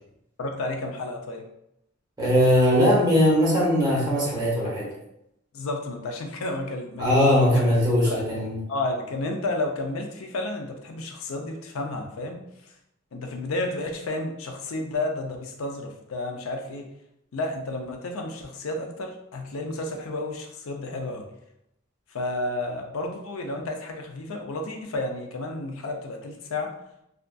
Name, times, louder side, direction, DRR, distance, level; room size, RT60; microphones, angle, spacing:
voice 1, 0.4-1.4 5.5-7.6 8.1-8.3 8.7-12.4 13.1-16.9 17.3-21.3 22.1-26.7, left 2 dB, 85° left, 3 dB, 0.5 m, -31 dB
voice 2, 2.2-4.9 7.0-8.6, equal, 20° right, -7 dB, 0.9 m, -20 dB
2.4 x 2.4 x 2.2 m, 0.80 s
head